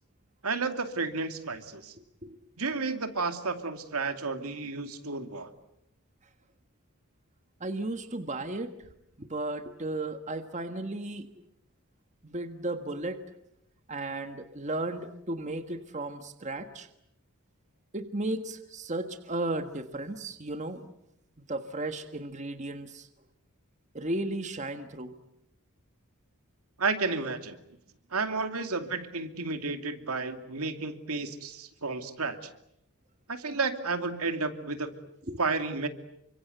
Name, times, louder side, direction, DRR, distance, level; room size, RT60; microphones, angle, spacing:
voice 1, 0.4-1.9 2.6-5.5 26.8-27.6 28.1-32.4 33.3-34.9 35.4-35.9, right 4 dB, 80° right, 7 dB, 2.6 m, -32 dB
voice 2, 7.6-8.8 9.2-11.3 12.2-13.2 13.9-16.9 17.9-20.9 21.5-23.1 23.9-25.1 35.3-35.4, right 2 dB, 30° right, 8 dB, 1.5 m, -34 dB
29.5 x 25.0 x 8.0 m, 0.78 s
head